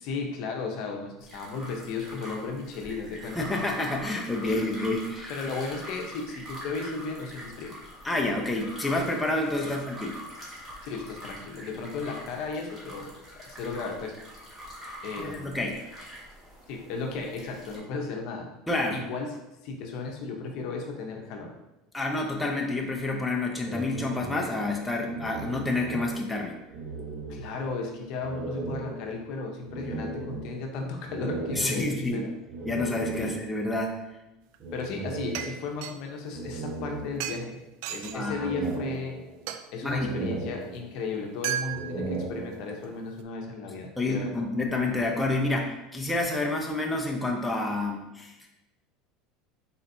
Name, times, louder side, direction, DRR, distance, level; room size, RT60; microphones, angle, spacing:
voice 1, 0.0-3.5 4.4-4.6 5.3-7.7 9.6-9.7 10.8-14.2 15.0-15.6 16.7-18.5 18.9-19.4 19.6-21.5 27.3-32.3 33.2-33.3 34.7-37.6 37.9-39.2 39.7-44.4, left 4 dB, 60° left, 2 dB, 0.8 m, -35 dB
sound 1, 1.2-17.8, equal, 20° right, 1.5 m, -44 dB
voice 2, 3.4-5.3 8.0-10.1 15.2-15.8 18.7-19.0 21.9-26.6 31.5-32.3 32.6-34.0 38.0-38.5 39.8-40.1 44.0-48.3, left 2 dB, 5° left, -1 dB, 0.7 m, -28 dB
sound 2, 23.6-26.4 26.7-27.8 28.2-33.6 34.6-35.9 36.3-37.6 38.0-39.5 39.9-41.2 41.6-42.9, right 3 dB, 45° right, 0.9 m, -37 dB
sound 3, 34.5-34.8 35.3-35.9 37.2-37.4 37.8-38.2 38.7-38.8 39.5-39.6 41.4-42.1 42.7-42.8, right 10 dB, 70° right, 0.3 m, -33 dB
4.3 x 4.0 x 2.7 m, 0.97 s
supercardioid pair, 105°, 0 cm